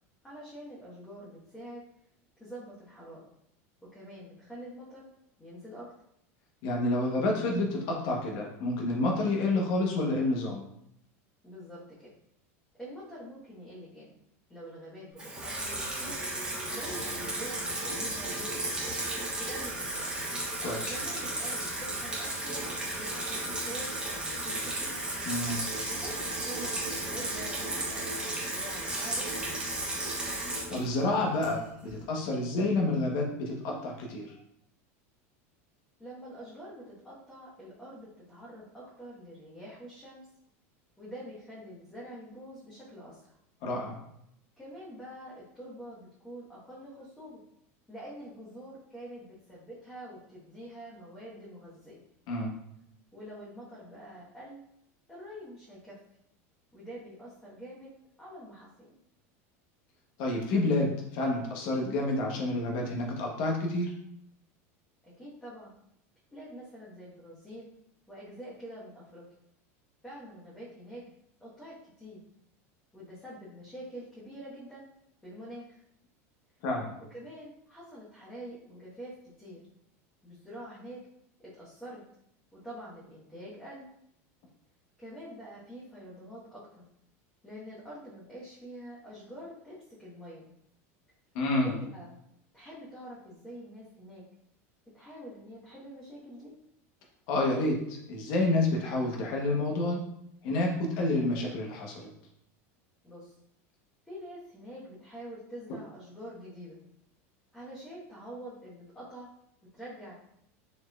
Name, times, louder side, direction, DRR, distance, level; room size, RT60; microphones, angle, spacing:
voice 1, 0.2-1.8 2.4-3.2 3.9-5.0 5.4-5.9 11.4-12.1 12.8-14.1 14.5-16.2 16.7-18.9 19.4-20.2 20.9-22.6 22.9-24.9 25.9-29.4 36.0-40.2 41.0-43.3 44.6-47.4 47.9-52.0 53.1-54.6 55.1-56.0 56.7-57.9 58.2-59.0 65.0-65.7 66.3-67.7 68.1-69.2 70.0-71.0 71.4-72.2 72.9-74.9 75.2-75.8 77.1-79.7 80.2-81.0 81.4-82.0 82.5-83.9 85.0-86.8 87.4-90.5 91.6-92.1 92.5-94.2 94.9-96.5 103.0-103.3 104.1-106.8 107.5-109.3 109.7-110.1, equal, 10° left, -8 dB, 1.1 m, -46 dB
voice 2, 6.6-10.6 20.6-21.0 25.2-25.6 30.7-34.3 43.6-44.0 52.3-52.5 60.2-64.0 76.6-76.9 91.3-91.7 97.3-100.1 100.4-102.1, left 2 dB, 60° left, 0 dB, 0.8 m, -29 dB
Water tap faucet / Sink (filling or washing), 15.2-31.9, right 2 dB, 10° right, 1.2 m, -34 dB
4.2 x 3.0 x 2.3 m, 0.75 s
supercardioid pair, 125°, 8 cm